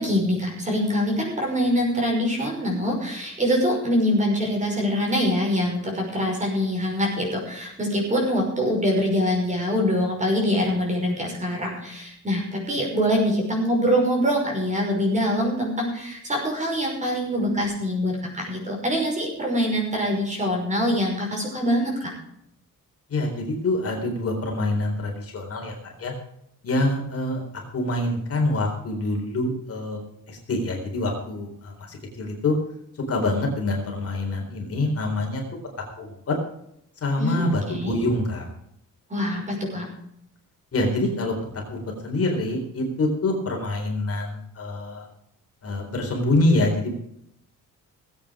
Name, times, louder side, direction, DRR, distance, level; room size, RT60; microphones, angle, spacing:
voice 1, 0.0-22.1 37.2-38.0 39.1-39.9, equal, 20° right, -1 dB, 5.6 m, -24 dB
voice 2, 23.1-26.1 26.6-27.4 27.7-30.0 30.3-32.5 33.1-35.4 36.0-36.4 37.0-38.5 40.7-41.3 41.7-45.1 45.6-46.9, left 2 dB, 45° left, 0 dB, 4.2 m, -25 dB
19.5 x 8.8 x 5.0 m, 0.73 s
wide cardioid pair, 170°, 32 cm